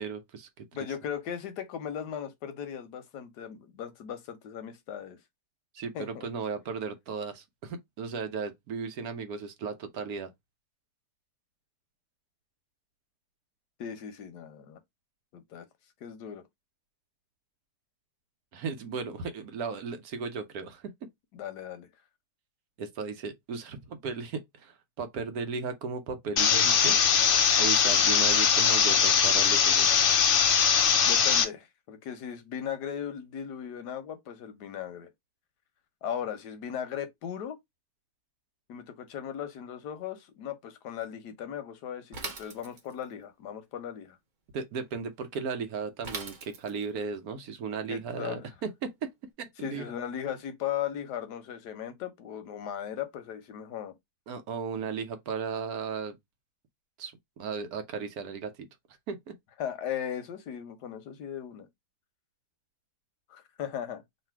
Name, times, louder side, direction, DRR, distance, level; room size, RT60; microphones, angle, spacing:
voice 1, 0.0-0.7 5.7-10.3 18.5-21.1 22.8-27.0 27.6-30.0 44.5-49.1 49.4-49.9 54.3-56.2 57.0-58.7 59.1-59.3, right 5 dB, 70° right, 1.2 m, -36 dB
voice 2, 0.7-5.2 5.9-6.2 13.8-14.8 15.3-15.7 16.0-16.4 21.3-21.9 31.1-35.1 36.0-37.6 38.7-44.2 47.9-48.5 49.6-53.9 59.6-61.7 63.3-64.0, left 9 dB, 85° left, 1.4 m, -37 dB
sound 1, 26.4-31.4, left 7 dB, 70° left, 0.5 m, -22 dB
Bicycle / Mechanisms, 42.1-43.1 46.0-47.0, right 4 dB, 40° right, 0.7 m, -40 dB
3.3 x 2.6 x 4.4 m
omnidirectional pair, 1.7 m